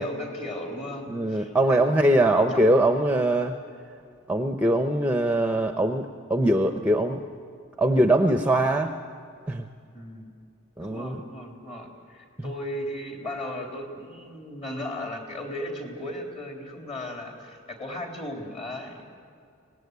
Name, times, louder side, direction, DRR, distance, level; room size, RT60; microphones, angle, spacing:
voice 1, 0.0-2.0 2.3-2.7 9.9-10.3 10.8-19.1, left 1 dB, 30° left, 2 dB, 3.7 m, -36 dB
voice 2, 1.1-3.5 4.3-7.2 7.8-8.9 9.5-9.6 10.8-11.2 12.4-12.5, right 1 dB, 5° right, 6 dB, 0.8 m, -22 dB
25.0 x 19.0 x 9.6 m, 2.3 s
head